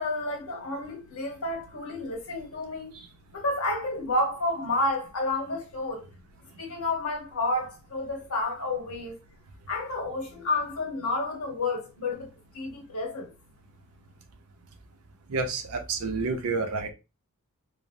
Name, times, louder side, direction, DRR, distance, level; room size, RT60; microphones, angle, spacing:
voice 1, 0.0-3.0 3.3-6.1 6.6-9.1 9.7-12.3 12.5-13.3, left 2 dB, 75° left, 1.0 m, -30 dB
voice 2, 15.3-16.9, right 4 dB, 70° right, 0.6 m, -29 dB
3.2 x 2.0 x 2.5 m
head